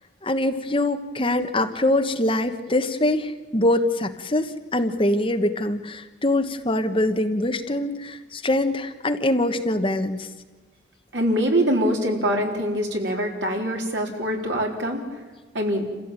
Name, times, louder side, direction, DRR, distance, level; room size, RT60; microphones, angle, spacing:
voice 1, 0.2-10.3, left 1 dB, 30° left, 7 dB, 1.3 m, -23 dB
voice 2, 11.1-15.0 15.5-15.9, equal, 75° right, 1 dB, 4.1 m, -24 dB
27.5 x 15.5 x 9.0 m, 1.3 s
head